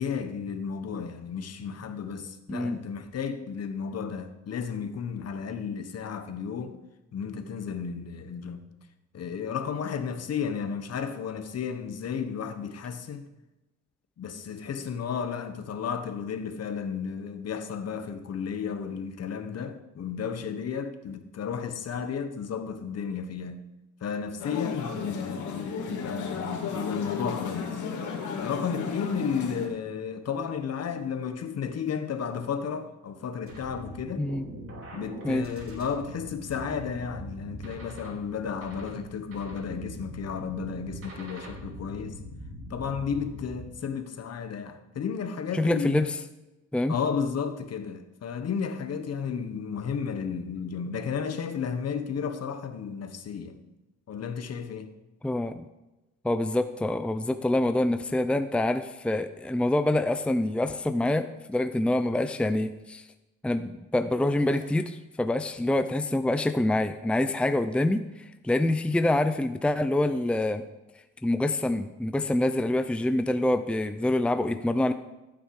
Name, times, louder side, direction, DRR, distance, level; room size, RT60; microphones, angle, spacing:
voice 1, 0.0-6.7 7.1-8.7 9.1-13.2 14.2-23.6 24.0-27.8 28.3-34.3 34.9-42.2 42.7-46.1 46.9-53.6 54.1-54.9, left 6 dB, 55° left, 1.5 m, -33 dB
voice 2, 2.5-2.8 34.2-34.5 35.2-35.5 45.5-46.2 46.7-46.9 55.2-55.6 56.2-63.0 63.4-68.1 68.4-70.6 71.2-74.9, left 1 dB, 5° left, 0.6 m, -26 dB
sound 1, 24.4-29.7, left 5 dB, 80° left, 2.4 m, -34 dB
sound 2, 33.5-43.6, equal, 45° right, 5.1 m, -42 dB
sound 3, 64.2-64.9 67.1-67.7 69.9-70.5, right 2 dB, 25° right, 2.2 m, -48 dB
15.0 x 9.2 x 4.9 m
cardioid pair, 90°, 30 cm